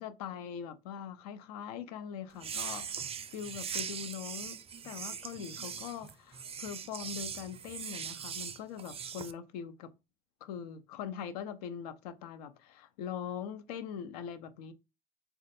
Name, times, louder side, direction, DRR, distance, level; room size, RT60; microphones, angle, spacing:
voice 1, 0.0-4.6 4.8-9.9 10.4-14.7, left 8 dB, 90° left, 0.4 m, -42 dB
sound 1, 2.3-9.3, right 7 dB, 30° right, 0.4 m, -40 dB
3.2 x 2.4 x 2.6 m
hypercardioid pair, 60°, 19 cm